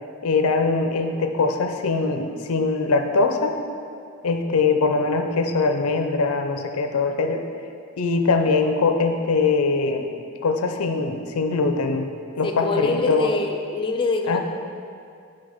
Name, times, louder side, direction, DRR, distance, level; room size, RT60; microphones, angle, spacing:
voice 1, 0.2-3.6 4.2-7.4 8.0-10.1 10.4-12.1 12.4-13.3 14.3-14.4, left 4 dB, 90° left, 6 dB, 0.5 m, -22 dB
voice 2, 12.4-14.4, left 3 dB, 25° left, 3 dB, 0.4 m, -24 dB
7.8 x 5.6 x 3.5 m, 2.3 s
head